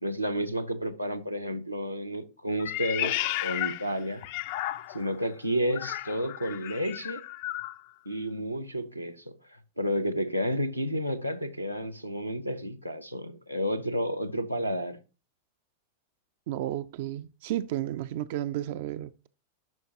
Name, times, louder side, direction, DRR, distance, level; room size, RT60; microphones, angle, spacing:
voice 1, 0.0-4.2 4.9-7.2 8.1-15.0, equal, 90° right, 0.6 m, -31 dB
Meow, 2.6-5.2 5.7-7.8, left 15 dB, 50° left, 0.4 m, -33 dB
voice 2, 16.5-19.3, right 13 dB, 50° right, 0.3 m, -32 dB
10.5 x 5.6 x 2.8 m
figure-of-eight pair, 90°, 0 cm